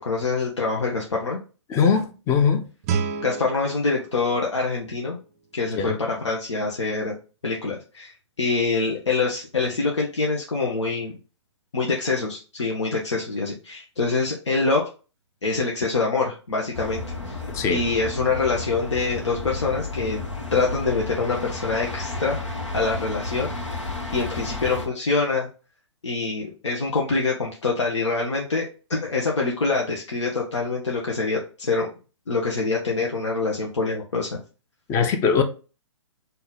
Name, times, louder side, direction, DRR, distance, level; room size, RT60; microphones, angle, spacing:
voice 1, 0.0-1.4 3.2-5.2 5.5-7.1 7.4-8.1 8.4-11.1 11.7-14.8 15.4-17.4 17.7-20.2 20.5-22.4 22.7-23.5 24.1-25.5 26.0-31.9 32.3-34.4, left 4 dB, 70° left, 1.1 m, -25 dB
voice 2, 1.7-2.6 5.7-6.0 17.5-17.8 34.9-35.4, left 6 dB, 20° left, 0.6 m, -21 dB
Guitar, 2.8-5.6, right 6 dB, 30° right, 0.4 m, -32 dB
sound 1, 16.7-24.9, left 2 dB, 90° left, 1.2 m, -32 dB
4.0 x 2.7 x 3.8 m
figure-of-eight pair, 125°, 15 cm